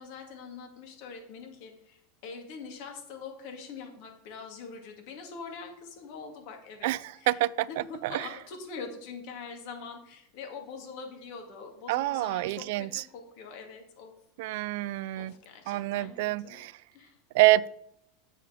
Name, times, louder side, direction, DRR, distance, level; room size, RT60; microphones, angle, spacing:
voice 1, 0.0-14.1 14.5-16.6 16.9-17.2, left 5 dB, 60° left, 3 dB, 2.1 m, -44 dB
voice 2, 7.3-7.7 8.0-8.1 11.9-13.0 14.4-15.3 15.7-16.7 17.3-17.7, right 17 dB, 70° right, 20 dB, 0.3 m, -26 dB
7.4 x 6.6 x 5.0 m, 0.75 s
hypercardioid pair, 110°, 0 cm